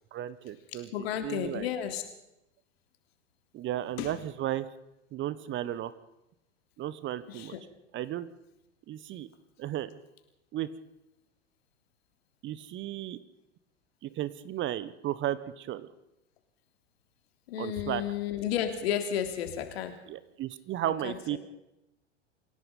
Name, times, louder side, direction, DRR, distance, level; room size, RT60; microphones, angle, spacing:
voice 1, 0.1-0.9 1.2-1.7 3.5-4.7 5.1-5.9 6.8-7.6 7.9-8.3 8.9-9.3 9.6-9.9 10.5-10.7 12.4-13.2 14.0-15.9 17.6-18.0 20.1-21.4, right 12 dB, 35° right, 16 dB, 1.2 m, -34 dB
voice 2, 0.7-2.0 4.0-4.1 7.3-7.6 17.5-20.0 21.0-21.4, left 9 dB, 60° left, 6 dB, 3.5 m, -32 dB
27.5 x 17.0 x 5.5 m, 0.89 s
figure-of-eight pair, 85°, 34 cm